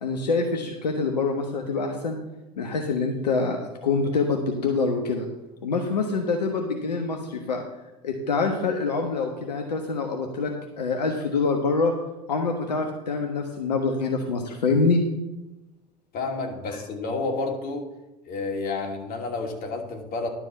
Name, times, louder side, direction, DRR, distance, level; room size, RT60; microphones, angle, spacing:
voice 1, 0.0-2.2 2.6-5.3 5.6-7.6 8.0-11.9 12.3-15.0 16.7-16.8, left 4 dB, 80° left, 3 dB, 1.3 m, -25 dB
voice 2, 16.1-17.9 18.3-20.3, left 3 dB, 45° left, 2 dB, 2.7 m, -30 dB
11.5 x 5.3 x 7.4 m, 1.0 s
figure-of-eight pair, 75°, 21 cm